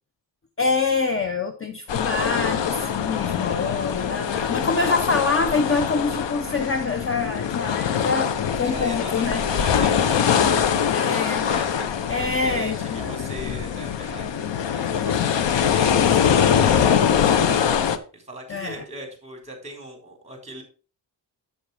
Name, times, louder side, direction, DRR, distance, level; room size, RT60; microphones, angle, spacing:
voice 1, 0.6-9.5 10.9-11.5 12.1-13.3 18.5-18.8, left 4 dB, 30° left, 7 dB, 0.8 m, -25 dB
sound 1, 1.9-18.0, left 8 dB, 65° left, 0.9 m, -23 dB
voice 2, 8.6-14.4 14.7-20.6, right 1 dB, 15° right, 1 dB, 3.9 m, -40 dB
8.1 x 7.9 x 3.4 m, 0.37 s
cardioid pair, 105°, 46 cm